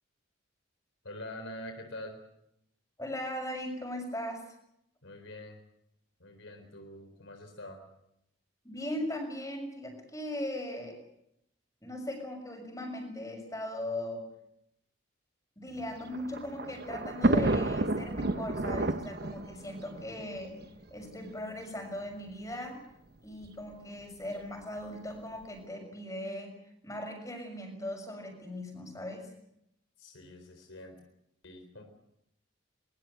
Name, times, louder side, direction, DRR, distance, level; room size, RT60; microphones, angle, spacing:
voice 1, 1.0-2.2 5.0-5.6 6.2-7.8 30.0-31.0 31.4-31.8, left 1 dB, 80° left, 5 dB, 4.1 m, -45 dB
voice 2, 3.0-4.5 8.6-11.0 11.8-14.3 15.6-20.6 20.9-22.8 23.2-26.6 26.8-29.3, left 1 dB, 15° left, 4 dB, 6.2 m, -39 dB
Thunder, 15.8-21.1 21.9-22.0 22.3-22.4 23.4-23.7, right 1 dB, 50° right, 1.1 m, -31 dB
23.0 x 22.5 x 8.1 m, 0.79 s
head